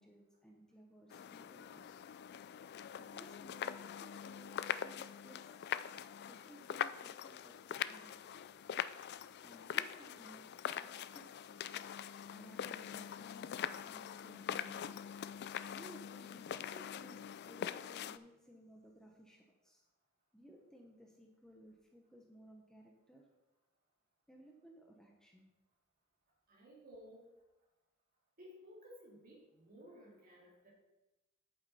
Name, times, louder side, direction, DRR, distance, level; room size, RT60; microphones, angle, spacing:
voice 1, 0.0-2.0 2.9-5.7 6.3-8.2 9.4-10.6 10.8-11.3 12.3-14.7 15.7-19.8 20.3-23.3 24.3-25.5, right 1 dB, 5° left, 0 dB, 0.9 m, -59 dB
sound 1, 1.1-18.2, left 9 dB, 50° left, 0.3 m, -43 dB
voice 2, 26.5-27.4 28.4-30.7, equal, 45° right, -4 dB, 2.4 m, -57 dB
8.9 x 7.9 x 4.2 m, 1.0 s
head